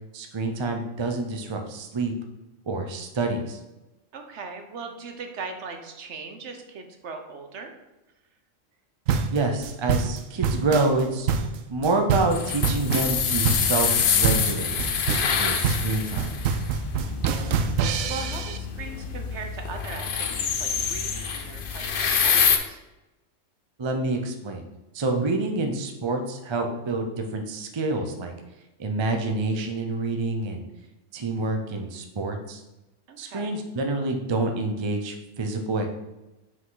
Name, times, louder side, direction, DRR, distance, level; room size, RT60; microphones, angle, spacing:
voice 1, 0.1-2.1 2.7-3.6 9.3-11.3 11.7-14.8 15.3-16.3 23.8-24.6 24.9-28.3 28.8-30.7 31.1-32.6 33.2-36.0, right 2 dB, 30° right, 4 dB, 0.5 m, -27 dB
voice 2, 4.1-7.8 17.1-17.6 18.1-22.8 33.1-33.5, right 4 dB, 65° right, 4 dB, 1.1 m, -39 dB
sound 1, 9.1-18.6, right 6 dB, 85° right, 1.0 m, -26 dB
sound 2, 12.3-22.6, left 7 dB, 55° left, 0.7 m, -26 dB
5.9 x 5.1 x 3.9 m, 1.0 s
omnidirectional pair, 1.3 m